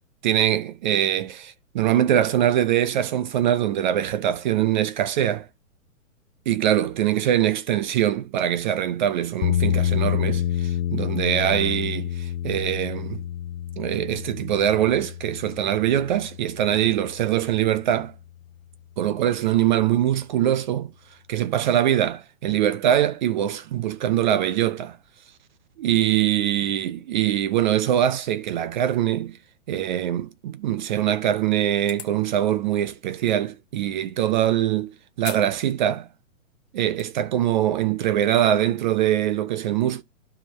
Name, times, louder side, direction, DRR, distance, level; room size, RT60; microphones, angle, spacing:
voice 1, 0.2-5.5 6.5-13.2 13.8-18.1 19.0-20.9 21.3-25.0 25.8-29.4 29.7-36.1 36.7-40.0, right 11 dB, 35° right, 0.5 m, -23 dB
sound 1, 9.4-17.5, left 11 dB, 75° left, 0.6 m, -28 dB
sound 2, 31.8-32.2 33.3-33.4 35.2-35.5 35.9-36.0 36.7-37.0, left 11 dB, 25° left, 1.3 m, -38 dB
12.0 x 4.8 x 3.0 m
hypercardioid pair, 130°, 41 cm